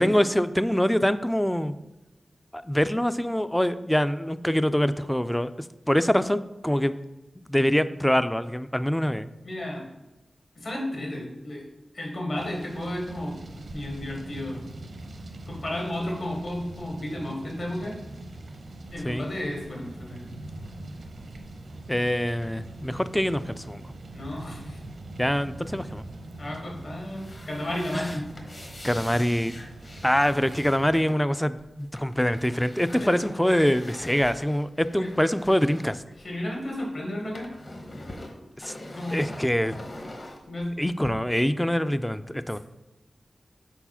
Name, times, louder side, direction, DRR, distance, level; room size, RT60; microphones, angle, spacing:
voice 1, 0.0-1.7 2.5-5.5 5.9-7.0 7.4-9.3 19.0-19.3 21.9-23.8 25.2-26.0 27.9-28.2 28.8-29.5 30.0-36.0 38.6-38.7 39.1-39.7 40.8-42.6, equal, 5° left, 13 dB, 0.3 m, -24 dB
voice 2, 9.4-9.9 10.6-11.6 11.9-13.3 13.7-14.6 15.5-18.0 18.9-20.2 24.1-24.8 26.4-28.3 32.9-33.1 35.0-35.1 36.2-37.5 38.8-39.2 40.5-40.8 42.5-42.6, left 1 dB, 65° left, -1 dB, 1.9 m, -33 dB
sound 1, 12.3-31.0, right 2 dB, 70° right, 0.7 m, -42 dB
sound 2, 27.0-36.8 37.0-41.1, left 1 dB, 45° left, 1.1 m, -44 dB
4.6 x 4.2 x 5.6 m, 1.0 s
wide cardioid pair, 85°, 0 cm